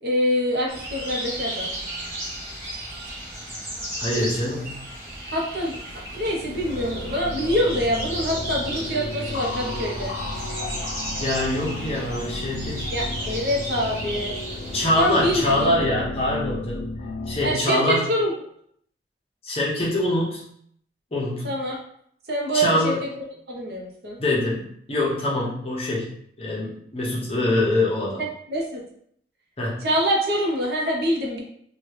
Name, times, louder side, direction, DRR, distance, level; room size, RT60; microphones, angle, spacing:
voice 1, 0.0-1.7 4.2-4.3 5.3-5.7 6.1-10.2 12.9-14.4 14.9-15.5 17.4-18.3 21.4-21.8 22.3-23.1 23.5-24.2 28.2-28.8 29.8-31.4, equal, 60° right, -1 dB, 0.7 m, -25 dB
sound 1, 0.7-15.7, right 1 dB, 15° right, 0.9 m, -34 dB
voice 2, 4.0-4.8 11.2-12.9 14.7-16.9 17.3-18.0 19.4-20.4 21.1-21.5 22.5-23.0 24.2-26.1 26.4-28.2 29.6-29.8, left 1 dB, 35° left, -4 dB, 0.8 m, -24 dB
sound 2, 5.9-17.5, left 2 dB, 85° left, 0.4 m, -33 dB
3.0 x 2.3 x 3.1 m, 0.67 s
head